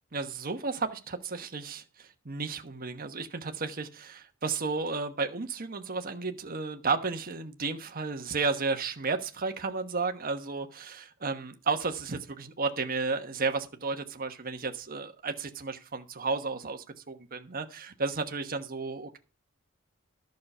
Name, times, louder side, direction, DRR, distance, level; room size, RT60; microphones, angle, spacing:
voice 1, 0.1-19.2, right 4 dB, 45° right, 6 dB, 1.2 m, -33 dB
11.5 x 6.5 x 5.5 m, 0.33 s
head